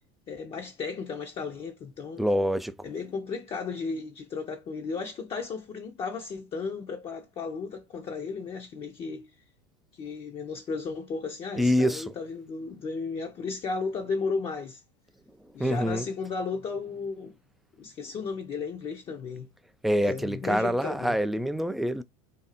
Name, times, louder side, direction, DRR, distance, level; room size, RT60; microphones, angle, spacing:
voice 1, 0.3-2.2 2.8-9.3 10.0-14.8 15.5-17.3 17.8-19.5 20.1-21.2, left 4 dB, 35° left, 0.7 m, -34 dB
voice 2, 2.2-2.7 11.6-12.0 15.6-16.1 19.8-22.0, equal, ahead, 0.3 m, -25 dB
2.7 x 2.4 x 4.0 m
hypercardioid pair, 90°, 15 cm